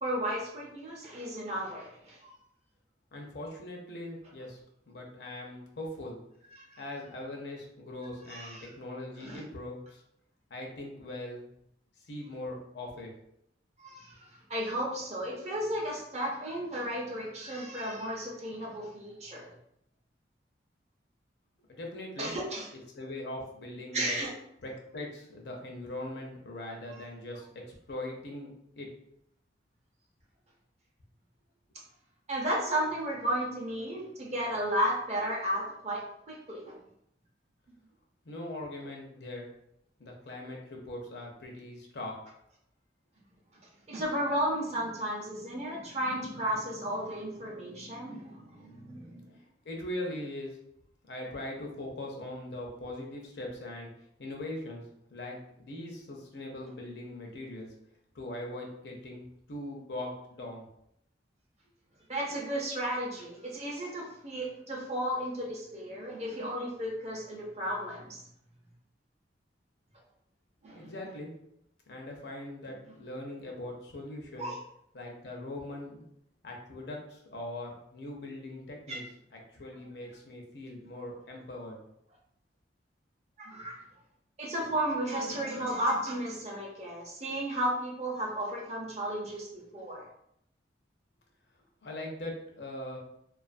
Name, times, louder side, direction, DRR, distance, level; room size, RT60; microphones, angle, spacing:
voice 1, 0.0-2.3 6.5-6.8 8.3-8.7 9.2-9.4 13.8-19.5 22.2-22.7 23.9-24.3 32.3-36.8 43.9-49.4 62.1-68.2 70.6-70.9 74.4-74.6 78.9-79.0 83.4-83.8 84.4-89.5 89.7-90.0, right 1 dB, 35° right, -2 dB, 0.6 m, -34 dB
voice 2, 3.1-4.6 4.9-6.2 6.8-10.0 10.5-11.5 12.1-13.1 21.7-22.3 22.9-24.1 24.6-28.9 38.2-39.5 40.0-42.1 49.6-50.6 51.1-53.9 54.2-54.8 55.1-57.7 58.1-59.2 59.5-60.6 70.7-71.3 71.9-74.5 74.9-76.0 76.4-79.0 79.3-81.8 91.8-93.0, left 1 dB, 65° left, 0 dB, 0.6 m, -41 dB
2.4 x 2.4 x 2.4 m, 0.74 s
head